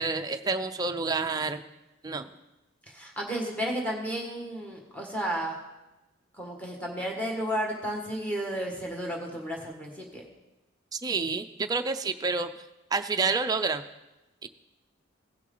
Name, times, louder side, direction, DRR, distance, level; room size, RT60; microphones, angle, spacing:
voice 1, 0.0-1.6 2.0-2.3 10.9-12.5 12.9-13.8 14.4-14.5, right 4 dB, 20° right, 7 dB, 0.4 m, -28 dB
voice 2, 2.9-5.6 6.4-10.2, right 1 dB, 5° left, -1 dB, 1.6 m, -33 dB
17.0 x 6.2 x 3.9 m, 1.0 s
head